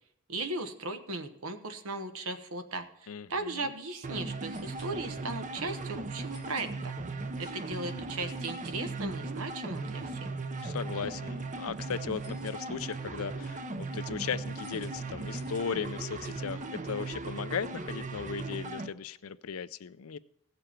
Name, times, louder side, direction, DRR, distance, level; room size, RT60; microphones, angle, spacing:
voice 1, 0.3-6.9 7.4-10.3, right 2 dB, 85° right, 8 dB, 1.2 m, -37 dB
voice 2, 3.1-3.7 10.6-20.2, left 6 dB, 75° left, 16 dB, 0.5 m, -37 dB
sound 1, 3.2-3.4 3.7-3.8 4.4-5.4 6.2-7.9 8.2-9.4 9.7-11.1 12.1-13.2 14.5-16.7, right 2 dB, 55° right, 3.9 m, -59 dB
sound 2, 4.0-18.9, right 3 dB, 35° right, 0.7 m, -38 dB
16.5 x 6.9 x 4.4 m, 0.75 s
head